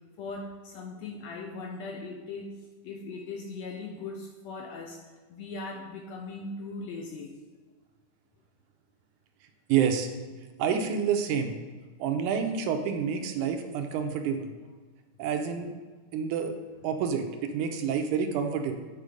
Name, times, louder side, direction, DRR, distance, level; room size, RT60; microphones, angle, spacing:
voice 1, 0.2-2.5 2.8-5.0 5.3-7.3, left 3 dB, 75° left, 1 dB, 1.6 m, -39 dB
voice 2, 9.7-10.1 10.6-11.6 12.0-14.5 15.2-15.7 16.1-16.6 16.8-18.7, right 7 dB, 80° right, 5 dB, 2.1 m, -28 dB
8.3 x 4.5 x 5.0 m, 1.4 s
omnidirectional pair, 3.6 m